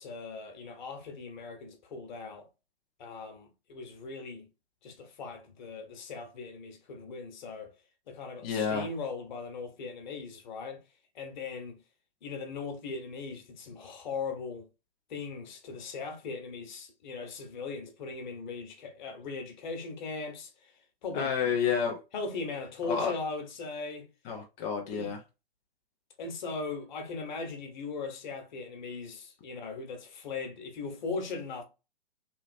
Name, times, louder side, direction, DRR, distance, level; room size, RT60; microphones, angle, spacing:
voice 1, 0.0-2.5 3.0-4.5 4.8-7.7 8.1-10.8 11.1-11.8 12.2-14.7 15.1-20.7 21.0-21.3 22.1-24.1 24.9-25.1 26.2-31.6, left 4 dB, 50° left, 1.1 m, -39 dB
voice 2, 8.4-8.9 21.1-22.0 22.8-23.1 24.3-25.2, left 6 dB, 15° left, 0.3 m, -29 dB
3.2 x 2.7 x 2.6 m
figure-of-eight pair, 120°, 30 cm